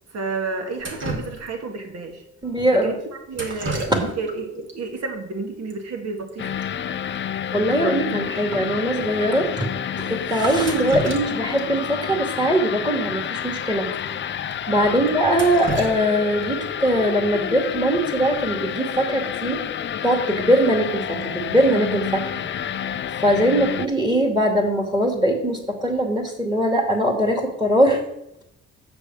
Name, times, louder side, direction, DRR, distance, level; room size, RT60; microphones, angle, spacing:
voice 1, 0.1-2.2 2.7-6.6 14.8-15.1 23.6-23.7, right 3 dB, 55° right, 3 dB, 2.1 m, -31 dB
Drip, 0.8-1.8 3.3-4.4 4.7-4.8 5.7-5.8 6.0-6.3 6.6-6.7 7.1-7.2 7.7-7.8 8.3-8.4 9.1-9.3 10.4-11.6 12.0-12.1 13.4-13.5 13.9-14.0 14.5-14.6 15.1-16.7 18.7-19.0 19.4-19.8, right 2 dB, 40° right, 2.1 m, -33 dB
voice 2, 2.4-2.9 3.9-4.0 7.5-9.7 10.0-13.9 14.7-19.6 20.0-22.4 23.2-28.0, right 1 dB, 15° right, 2 dB, 2.5 m, -21 dB
sound 1, 6.4-23.9, left 9 dB, 40° left, 0.5 m, -29 dB
6.8 x 6.2 x 7.5 m, 0.81 s
cardioid pair, 90°, 30 cm